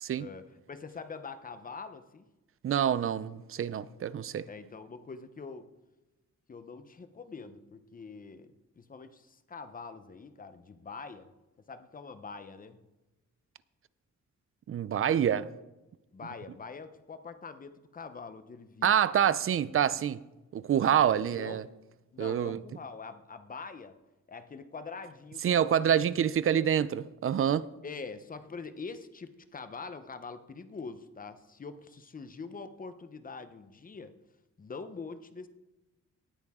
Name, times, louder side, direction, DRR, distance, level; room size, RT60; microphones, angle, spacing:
voice 1, 0.2-2.3 4.5-5.7 6.5-11.3 11.7-12.8 16.1-18.9 21.1-21.6 22.1-24.0 24.3-25.9 27.8-34.1 34.6-35.5, left 4 dB, 30° left, 0.8 m, -44 dB
voice 2, 2.6-4.5 14.7-15.5 18.8-20.2 20.5-21.6 22.2-22.6 25.4-27.7, right 9 dB, 45° right, 0.4 m, -27 dB
18.0 x 8.8 x 3.6 m
wide cardioid pair, 170°, 30 cm